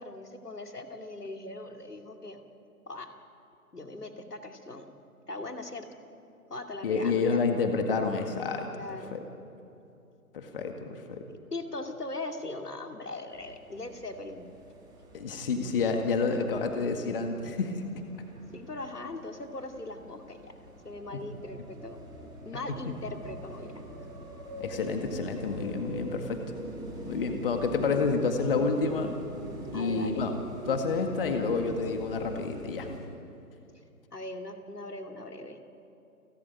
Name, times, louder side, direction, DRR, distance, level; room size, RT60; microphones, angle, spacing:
voice 1, 0.0-2.4 2.9-3.1 3.7-4.9 5.3-5.9 6.5-7.4 8.7-9.2 11.3-14.5 18.5-20.5 20.8-22.0 22.4-23.8 29.7-30.2 34.1-35.6, left 2 dB, 80° left, 5 dB, 2.7 m, -40 dB
voice 2, 6.8-8.7 9.1-9.2 10.3-11.2 15.1-17.9 21.1-21.2 22.9-23.0 24.6-26.4 27.0-29.2 29.7-30.3 30.7-32.9, left 4 dB, 35° left, 5 dB, 1.9 m, -29 dB
sound 1, 13.3-33.0, right 1 dB, 10° right, 4.2 m, -44 dB
29.5 x 13.0 x 9.4 m, 2.7 s
figure-of-eight pair, 145°, 46 cm